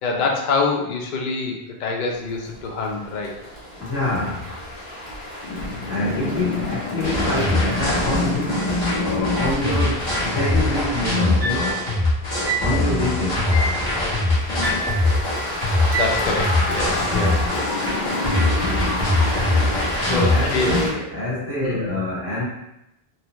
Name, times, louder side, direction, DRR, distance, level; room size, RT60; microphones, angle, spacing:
voice 1, 0.0-3.3 5.4-9.4 15.9-20.8 21.6-21.9, left 3 dB, 55° left, 0 dB, 0.6 m, -27 dB
sound 1, 2.1-20.9, left 1 dB, 80° left, 1.2 m, -33 dB
voice 2, 3.8-4.5 5.8-8.6 9.0-11.8 12.6-13.4 20.1-22.4, left 2 dB, 15° right, -9 dB, 0.9 m, -26 dB
sound 2, 7.0-20.9, left 2 dB, 25° left, 0.9 m, -22 dB
sound 3, 11.4-11.8 12.5-12.8 13.5-13.8 14.6-15.0 15.9-16.3, right 1 dB, 55° right, 0.7 m, -26 dB
2.8 x 2.0 x 3.0 m, 0.86 s
omnidirectional pair, 1.0 m